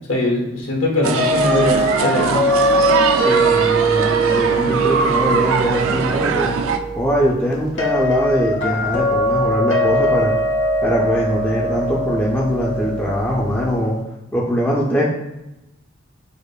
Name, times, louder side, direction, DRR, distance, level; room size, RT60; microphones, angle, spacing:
voice 1, 0.1-2.4, left 1 dB, 90° left, -1 dB, 1.0 m, -20 dB
sound 1, 1.0-6.8, right 6 dB, 90° right, 0.3 m, -21 dB
sound 2, 1.2-14.0, right 1 dB, 70° left, 1.0 m, -21 dB
voice 2, 3.2-6.5 6.9-10.3 10.8-14.0 14.3-15.0, equal, 10° left, -5 dB, 0.3 m, -21 dB
4.8 x 2.5 x 2.2 m, 0.94 s
head